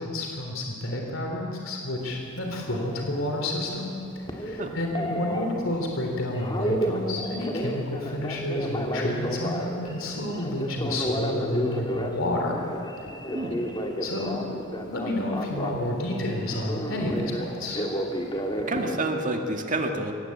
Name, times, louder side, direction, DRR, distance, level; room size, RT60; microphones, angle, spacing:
voice 1, 0.0-12.6 14.0-14.5 14.9-17.8, left 1 dB, 70° left, 1 dB, 3.4 m, -30 dB
Telephone, 2.0-19.1, equal, 25° left, 2.0 m, -32 dB
voice 2, 18.7-20.1, right 2 dB, 40° right, 3 dB, 2.1 m, -28 dB
25.0 x 18.5 x 8.7 m, 2.6 s
head